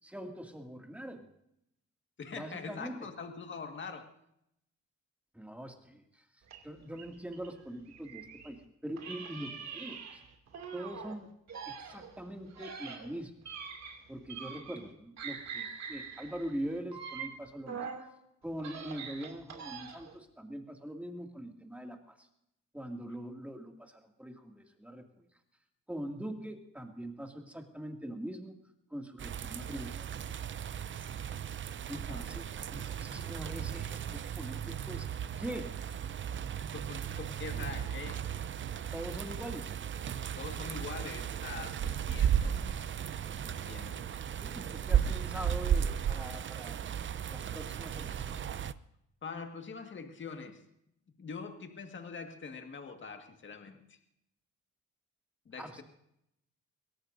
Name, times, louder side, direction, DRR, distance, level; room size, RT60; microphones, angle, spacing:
voice 1, 0.0-1.2 2.3-3.1 5.3-6.3 6.6-10.2 10.7-11.3 11.7-13.3 14.1-17.8 18.4-22.3 22.7-25.3 25.9-28.5 28.9-30.1 31.9-35.1 35.4-35.7 38.9-39.7 44.4-46.9 47.3-48.4 55.6-55.8, right 1 dB, 5° right, 3 dB, 2.3 m, -42 dB
voice 2, 2.2-4.1 31.9-32.3 36.6-38.2 40.4-42.6 43.4-44.1 49.2-50.6 51.2-54.0 55.5-55.8, left 5 dB, 40° left, 5 dB, 1.8 m, -44 dB
sound 1, 6.5-8.6 9.0-11.2 11.5-14.9 15.2-18.1 18.5-20.2, right 6 dB, 60° right, 2.6 m, -44 dB
sound 2, 29.2-48.7, right 9 dB, 40° right, 0.6 m, -35 dB
23.0 x 17.5 x 2.7 m, 0.78 s
cardioid pair, 90°, 30 cm